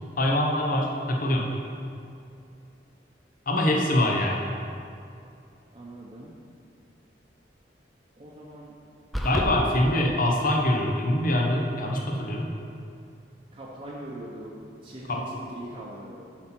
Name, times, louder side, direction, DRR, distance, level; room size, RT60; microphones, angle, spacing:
voice 1, 0.2-1.5 3.5-4.5 9.2-12.5 15.1-15.2, left 1 dB, 50° left, 0 dB, 0.9 m, -24 dB
voice 2, 3.5-3.8 5.7-6.3 8.2-8.8 13.5-16.3, right 1 dB, 30° right, -6 dB, 0.8 m, -41 dB
sound 1, 9.1-9.5, equal, ahead, 0.5 m, -27 dB
7.8 x 4.3 x 6.0 m, 2.5 s
head